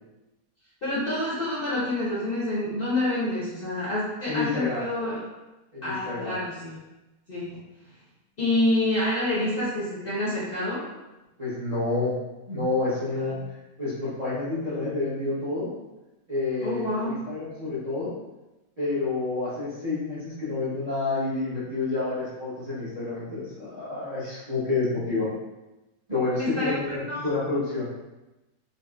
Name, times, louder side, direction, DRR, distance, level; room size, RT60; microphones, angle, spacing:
voice 1, 0.8-5.2 5.8-6.8 7.3-7.5 8.4-10.8 13.2-13.4 16.6-17.2 26.4-27.3, left 1 dB, 45° left, -10 dB, 0.8 m, -27 dB
voice 2, 4.3-4.8 5.7-6.3 11.4-12.1 12.5-15.7 16.3-18.1 18.8-25.3 26.1-27.9, left 3 dB, 30° right, -11 dB, 0.7 m, -29 dB
4.0 x 2.0 x 2.3 m, 1.0 s
omnidirectional pair, 1.8 m